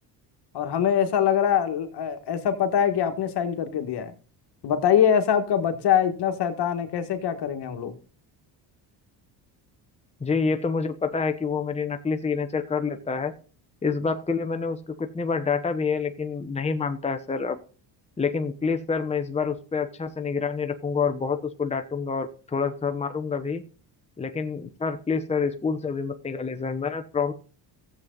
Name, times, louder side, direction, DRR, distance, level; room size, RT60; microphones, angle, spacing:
voice 1, 0.5-4.1 4.6-7.9, left 8 dB, 65° left, 1.8 m, -23 dB
voice 2, 10.2-13.3 13.8-17.6 18.2-23.6 24.2-27.3, left 5 dB, 15° left, 1.0 m, -27 dB
15.0 x 7.7 x 4.0 m
cardioid pair, 115°, 43 cm